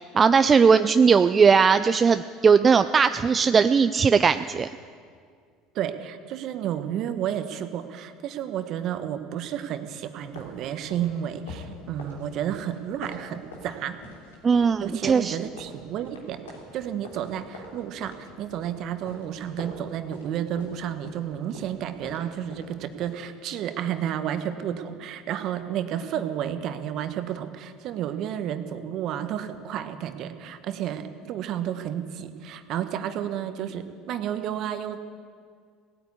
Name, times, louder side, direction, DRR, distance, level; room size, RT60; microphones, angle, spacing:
voice 1, 0.1-4.7 14.4-15.4, right 5 dB, 30° right, 11 dB, 0.4 m, -19 dB
voice 2, 5.7-14.0 14.8-16.5 16.7-35.0, right 10 dB, 55° right, 9 dB, 1.2 m, -31 dB
sound 1, 10.2-23.2, left 2 dB, 85° left, 3.1 m, -45 dB
17.5 x 9.3 x 8.5 m, 2.1 s
hypercardioid pair, 75°, 0 cm